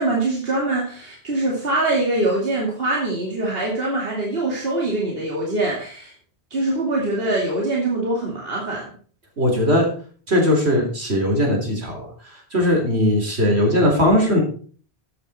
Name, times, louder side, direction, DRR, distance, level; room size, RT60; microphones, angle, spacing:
voice 1, 0.0-6.1 6.5-8.9, right 2 dB, 65° right, -2 dB, 2.6 m, -23 dB
voice 2, 9.4-9.9 10.3-12.0 12.5-14.4, left 1 dB, 85° right, 1 dB, 4.2 m, -19 dB
13.5 x 8.8 x 4.3 m, 0.43 s
omnidirectional pair, 1.1 m